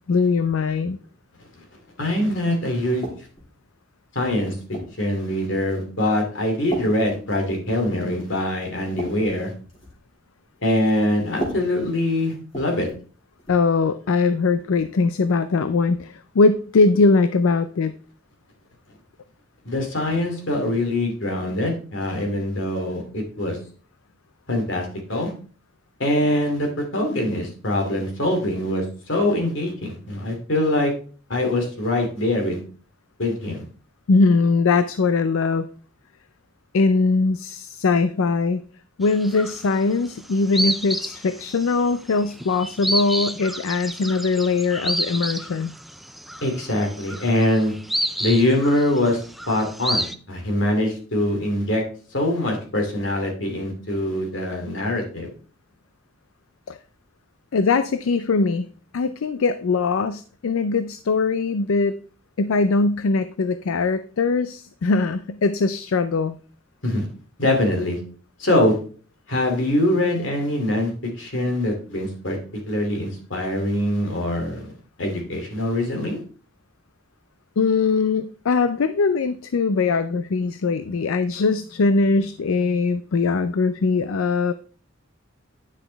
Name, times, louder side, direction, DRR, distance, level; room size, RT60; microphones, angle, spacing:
voice 1, 0.1-1.0 13.5-17.9 34.1-35.7 36.7-38.6 39.0-45.8 56.7-56.8 57.5-58.7 58.9-62.0 62.4-66.4 77.6-84.5, left 4 dB, 80° left, 12 dB, 0.4 m, -21 dB
voice 2, 2.0-3.0 4.1-9.5 10.6-12.9 19.6-23.6 24.5-25.3 26.0-30.9 31.3-32.6 33.2-33.6 46.4-47.7 48.2-49.2 49.5-51.8 52.1-55.3 66.8-67.1 67.4-68.0 68.4-68.8 69.3-70.9 71.2-72.4 72.7-74.7 75.0-76.2, left 1 dB, 65° left, 2 dB, 2.6 m, -23 dB
sound 1, 3.0-3.5 4.2-5.1 5.7-6.0 6.7-7.9 8.2-8.4 8.7-10.0 11.3-13.1 13.4-13.7 14.8-14.9, right 1 dB, 30° left, 3.2 m, -35 dB
sound 2, 39.0-39.9 40.2-50.1, right 1 dB, ahead, 0.4 m, -29 dB
9.8 x 6.1 x 3.3 m, 0.41 s
head